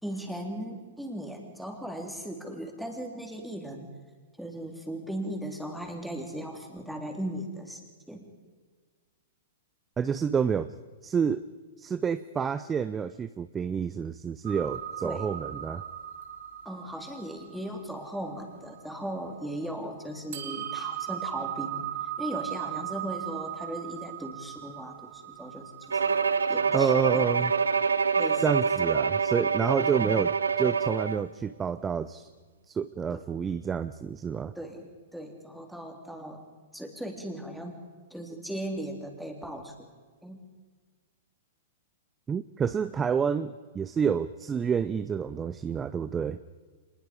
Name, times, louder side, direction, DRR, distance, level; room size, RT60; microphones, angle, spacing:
voice 1, 0.0-3.9 4.4-8.3 15.0-15.3 16.7-21.9 22.2-26.2 26.5-27.3 28.2-28.4 33.1-33.2 34.6-36.4 36.7-37.8 38.1-39.9 40.2-40.4, right 1 dB, ahead, 2 dB, 3.6 m, -37 dB
voice 2, 10.0-10.7 11.0-11.4 11.8-15.8 26.7-27.5 28.4-32.3 32.7-34.5 42.3-46.4, right 7 dB, 20° right, 13 dB, 0.6 m, -29 dB
sound 1, 14.4-19.6 20.3-27.8, right 11 dB, 60° right, 2.8 m, -38 dB
Bowed string instrument, 25.9-31.3, right 5 dB, 85° right, 0.8 m, -26 dB
25.0 x 20.5 x 5.4 m, 1.5 s
hypercardioid pair, 110°, 0 cm